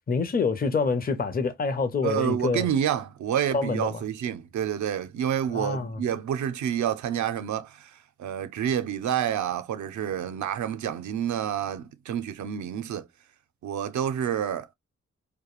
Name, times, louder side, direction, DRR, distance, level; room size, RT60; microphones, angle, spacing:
voice 1, 0.1-2.7 3.5-4.0 5.5-6.0, left 4 dB, 30° left, 0.6 m, -26 dB
voice 2, 2.0-13.1 13.6-14.7, right 9 dB, 75° right, 0.5 m, -28 dB
2.3 x 2.1 x 3.0 m
cardioid pair, 65°, 29 cm